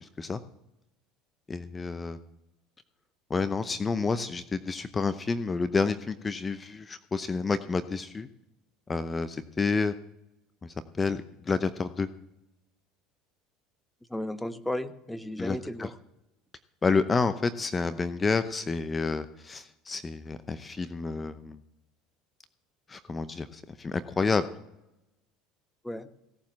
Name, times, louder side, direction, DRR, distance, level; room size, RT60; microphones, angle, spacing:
voice 1, 0.0-0.4 1.5-2.2 3.3-8.3 8.9-9.9 10.6-12.1 15.4-15.9 16.8-21.6 22.9-24.5, left 4 dB, 25° left, 12 dB, 0.7 m, -29 dB
voice 2, 14.1-15.9 25.8-26.1, left 1 dB, 5° left, 11 dB, 1.0 m, -34 dB
17.0 x 7.3 x 7.5 m, 0.90 s
hypercardioid pair, 80°, 0 cm